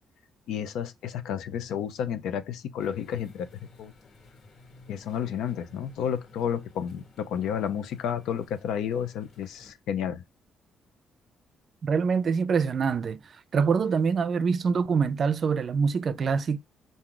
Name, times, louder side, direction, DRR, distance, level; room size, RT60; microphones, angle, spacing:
voice 1, 0.5-3.5 3.8-3.9 4.9-10.2, left 8 dB, 85° left, 0.7 m, -31 dB
sound 1, 2.8-9.7, left 2 dB, 55° left, 1.5 m, -54 dB
voice 2, 11.8-16.6, right 5 dB, 50° right, 0.5 m, -25 dB
4.5 x 2.7 x 3.7 m
cardioid pair, 90°, 0 cm